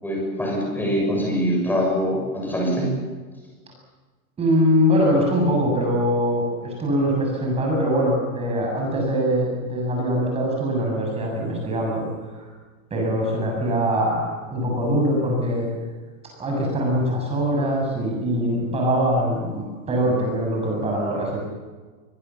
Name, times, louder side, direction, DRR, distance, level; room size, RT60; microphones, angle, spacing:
voice 1, 0.0-2.9, equal, 5° left, -1 dB, 6.8 m, -23 dB
voice 2, 4.4-12.5 12.9-15.7 16.4-21.4, equal, 15° right, -1 dB, 7.2 m, -22 dB
23.5 x 22.0 x 7.2 m, 1.4 s
supercardioid pair, 170°, 44 cm